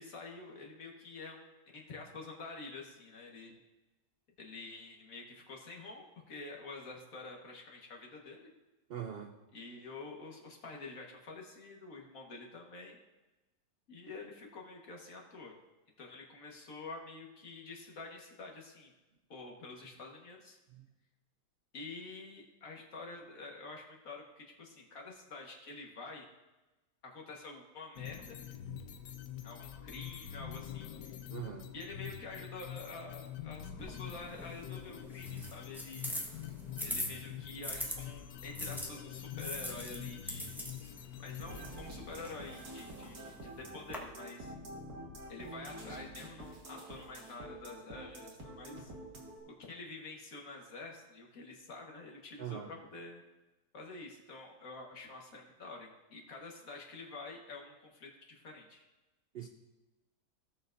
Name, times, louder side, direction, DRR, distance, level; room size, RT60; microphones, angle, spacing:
voice 1, 0.0-3.5 4.4-8.5 9.5-13.0 13.9-15.5 16.0-18.9 19.3-20.6 21.7-26.3 27.0-28.4 29.4-31.2 31.7-36.1 36.8-40.7 41.2-44.5 45.3-48.9 49.5-53.2 53.7-58.8, left 3 dB, 55° left, 0 dB, 1.8 m, -48 dB
voice 2, 8.9-9.3 31.3-31.7 52.4-52.7 59.3-59.5, right 9 dB, 80° right, 4 dB, 0.5 m, -41 dB
sound 1, 28.0-41.8, left 9 dB, 85° left, 1.3 m, -45 dB
sound 2, 33.8-38.0 38.5-44.0, equal, ahead, 1.1 m, -43 dB
sound 3, 41.4-49.4, right 1 dB, 65° right, 2.1 m, -47 dB
17.0 x 6.9 x 2.6 m, 1.1 s
omnidirectional pair, 1.8 m